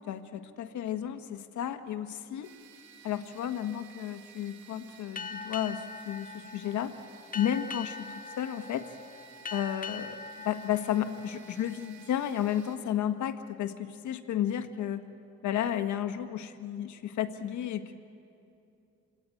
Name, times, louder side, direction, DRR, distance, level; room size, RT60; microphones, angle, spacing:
voice 1, 0.1-2.5 3.0-7.0 7.3-8.0 8.4-8.9 9.5-10.2 10.4-15.0 15.4-18.0, left 10 dB, 75° left, 8 dB, 1.5 m, -32 dB
sound 1, 2.4-12.8, right 8 dB, 70° right, 2.2 m, -55 dB
Boat Water vehicle, 5.2-12.2, left 5 dB, 30° left, 1.0 m, -43 dB
27.5 x 19.5 x 9.2 m, 2.6 s
cardioid pair, 90°, 30 cm